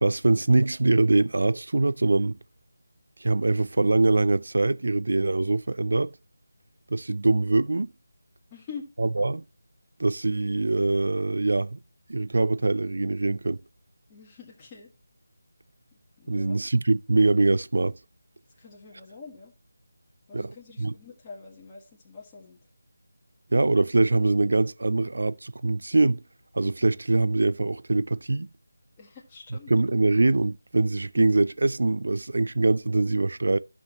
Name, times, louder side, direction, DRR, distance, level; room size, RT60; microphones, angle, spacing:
voice 1, 0.0-2.4 3.2-6.1 6.9-7.9 9.0-9.4 10.0-11.8 12.1-13.6 16.3-17.9 20.3-20.9 23.5-26.2 26.5-28.5 29.7-33.6, right 2 dB, 65° right, 0.3 m, -23 dB
voice 2, 8.5-8.8 14.1-14.9 15.9-16.6 18.6-19.5 20.3-22.6 29.0-29.7, left 5 dB, 20° left, 1.6 m, -45 dB
12.5 x 6.2 x 2.9 m
figure-of-eight pair, 160°, 0 cm